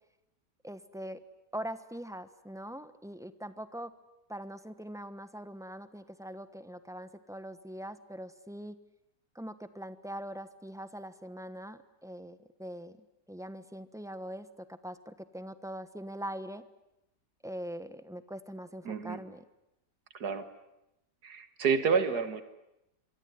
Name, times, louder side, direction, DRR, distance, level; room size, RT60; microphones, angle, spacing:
voice 1, 0.6-1.2 1.5-3.9 4.3-8.8 9.3-13.0 13.3-16.6 17.4-19.4, equal, ahead, 12 dB, 0.9 m, -42 dB
voice 2, 18.9-19.2 20.1-20.5 21.2-22.4, right 5 dB, 70° right, 11 dB, 2.1 m, -29 dB
26.5 x 23.5 x 9.5 m, 0.89 s
omnidirectional pair, 1.8 m